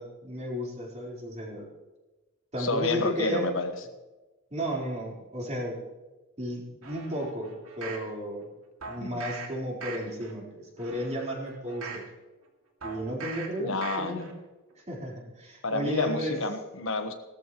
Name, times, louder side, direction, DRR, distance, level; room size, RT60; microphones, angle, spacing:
voice 1, 0.0-1.7 2.5-3.5 4.5-5.8 6.4-8.5 8.8-12.0 12.8-14.3 14.8-16.4, equal, 30° right, -3 dB, 4.2 m, -33 dB
voice 2, 2.6-3.7 9.0-9.2 13.6-14.3 15.6-17.1, left 3 dB, 65° left, 6 dB, 1.3 m, -29 dB
sound 1, 6.8-8.1 8.8-9.5 9.8-10.3 10.8-12.1 12.8-13.5 13.8-14.3 14.7-14.8, right 5 dB, 85° right, 2.5 m, -41 dB
18.0 x 13.5 x 3.1 m, 1.1 s
head